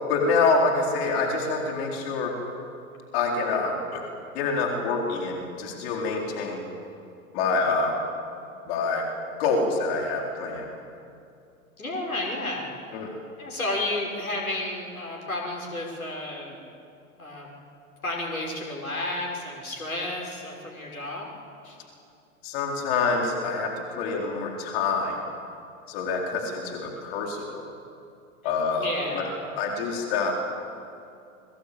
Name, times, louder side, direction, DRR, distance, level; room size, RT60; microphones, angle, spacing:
voice 1, 0.1-2.3 3.1-4.0 4.3-6.6 7.3-8.1 8.7-9.1 9.4-10.7 12.9-13.1 22.4-25.2 25.9-27.7 28.4-29.3 29.6-30.4, left 4 dB, 45° left, 1 dB, 4.2 m, -26 dB
voice 2, 11.8-12.7 13.4-16.6 17.2-17.5 18.0-21.3 21.6-21.8 28.8-29.5, left 1 dB, 80° left, -1 dB, 5.9 m, -32 dB
29.0 x 23.0 x 8.8 m, 2.5 s
figure-of-eight pair, 100°, 42 cm